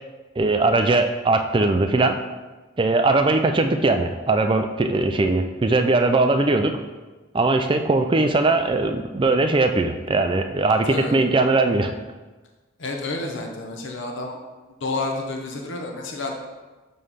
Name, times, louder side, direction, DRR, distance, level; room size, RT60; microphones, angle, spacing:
voice 1, 0.4-2.2 2.8-6.8 7.3-11.9, right 2 dB, 25° right, 7 dB, 0.3 m, -20 dB
voice 2, 12.8-14.4 14.8-16.3, left 2 dB, 60° left, 1 dB, 0.7 m, -29 dB
7.0 x 3.2 x 5.5 m, 1.2 s
head